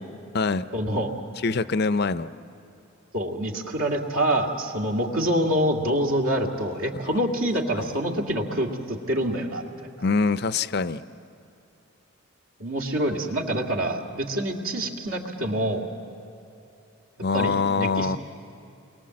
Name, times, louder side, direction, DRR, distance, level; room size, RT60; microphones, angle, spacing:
voice 1, 0.7-1.1 3.1-9.7 12.6-15.9 17.3-18.2, right 1 dB, 70° right, 1 dB, 2.2 m, -26 dB
voice 2, 1.4-2.3 10.0-11.0 17.2-18.2, left 4 dB, 45° left, 14 dB, 0.5 m, -24 dB
29.5 x 22.5 x 7.7 m, 2.7 s
head